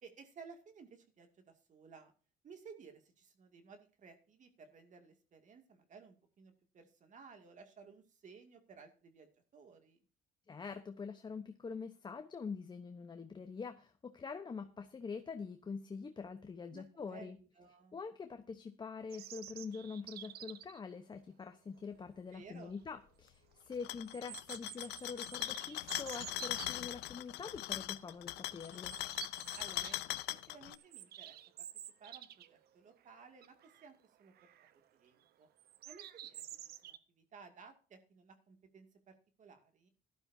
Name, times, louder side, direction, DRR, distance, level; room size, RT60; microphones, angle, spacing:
voice 1, 0.0-2.1 2.4-10.0 16.7-18.0 22.3-22.7 29.5-30.0 30.5-31.4 32.0-34.5 34.9-35.5 35.9-39.9, right 5 dB, 45° right, 6 dB, 2.3 m, -57 dB
voice 2, 10.5-17.4 17.9-29.0, left 5 dB, 25° left, 7 dB, 0.9 m, -45 dB
sound 1, 19.1-20.8 22.4-22.5 22.8-22.9 24.0-26.7 27.4-27.7 28.0-28.1 28.6-30.0 30.3-32.6 32.9-33.0 33.4-33.9 34.4-34.7 35.6-37.0, right 12 dB, 70° right, 0.9 m, -50 dB
sound 2, 23.7-30.8, left 17 dB, 80° left, 0.6 m, -41 dB
17.0 x 12.0 x 2.7 m, 0.36 s
cardioid pair, 110°, 17 cm